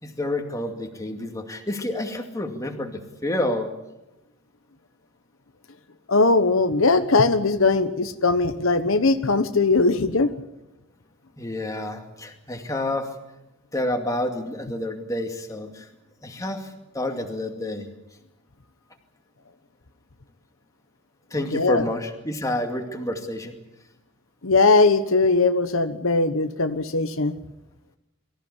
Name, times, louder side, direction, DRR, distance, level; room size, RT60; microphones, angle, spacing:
voice 1, 0.0-3.7 11.4-13.1 13.7-15.9 16.2-17.9 21.3-23.5, left 1 dB, 15° left, 3 dB, 2.3 m, -29 dB
voice 2, 6.1-10.3 21.5-21.8 24.4-27.4, left 3 dB, 75° left, 9 dB, 1.2 m, -20 dB
24.0 x 15.0 x 9.9 m, 0.94 s
head